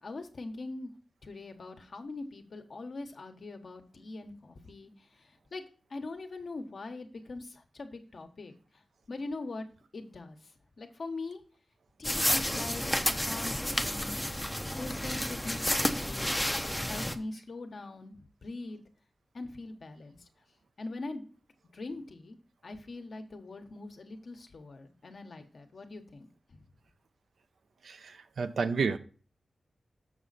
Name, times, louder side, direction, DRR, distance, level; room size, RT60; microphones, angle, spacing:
voice 1, 0.0-0.9 1.2-5.6 5.9-8.5 9.1-9.7 9.9-10.4 10.8-11.4 12.0-12.9 13.2-14.2 14.8-16.4 16.7-18.8 19.3-20.2 20.8-21.2 21.7-22.4 22.6-26.6, left 3 dB, 55° left, 1.2 m, -42 dB
sound 1, 12.0-17.1, left 1 dB, 5° left, 0.7 m, -31 dB
voice 2, 27.8-29.0, right 5 dB, 80° right, 0.7 m, -31 dB
6.9 x 6.4 x 4.1 m
wide cardioid pair, 115°, 0 cm